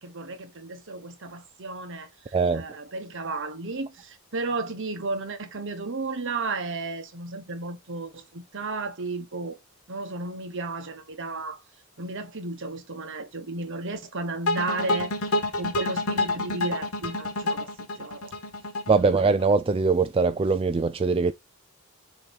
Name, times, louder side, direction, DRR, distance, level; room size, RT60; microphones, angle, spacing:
voice 1, 0.0-9.6 9.9-11.6 12.0-17.7 18.0-18.3, right 3 dB, 55° right, 1.2 m, -34 dB
voice 2, 2.3-2.6 18.9-21.3, right 4 dB, 25° right, 0.3 m, -22 dB
sound 1, 14.5-19.6, left 2 dB, 75° left, 1.3 m, -28 dB
6.8 x 2.9 x 5.2 m
head